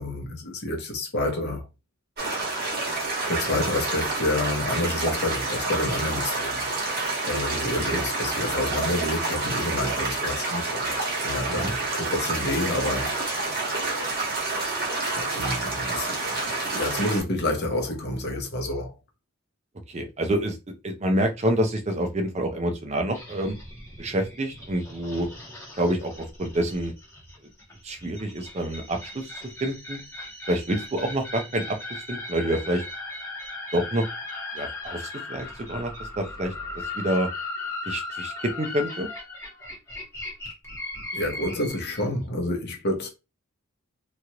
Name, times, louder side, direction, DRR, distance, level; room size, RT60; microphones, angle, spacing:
voice 1, 0.0-1.7 3.3-6.7 7.2-13.1 15.2-18.9 41.1-43.1, left 1 dB, 50° left, 0.9 m, -29 dB
sound 1, 2.2-17.2, right 3 dB, 45° right, 1.3 m, -28 dB
voice 2, 19.9-20.6 20.8-23.5 24.0-25.3 25.8-26.9 27.8-29.3 29.6-30.0 30.5-31.8 32.1-32.8 33.7-34.0 34.5-36.5 36.9-37.3 37.9-39.1, right 1 dB, 30° right, 0.5 m, -27 dB
sound 2, 23.1-42.1, left 2 dB, 15° left, 1.2 m, -38 dB
3.0 x 2.5 x 2.8 m
head